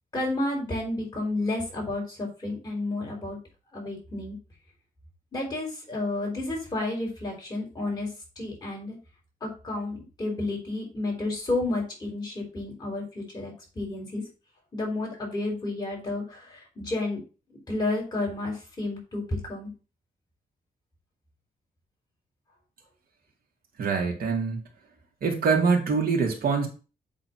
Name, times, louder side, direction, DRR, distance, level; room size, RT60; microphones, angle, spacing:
voice 1, 0.1-3.4 3.7-4.4 5.3-8.1 8.4-9.0 9.4-14.2 14.7-17.2 17.7-19.7, left 2 dB, 25° left, -2 dB, 4.8 m, -31 dB
voice 2, 23.8-24.6 25.2-26.7, right 5 dB, 80° right, 1 dB, 2.4 m, -24 dB
8.2 x 3.9 x 6.0 m, 0.34 s
wide cardioid pair, 140°, 15 cm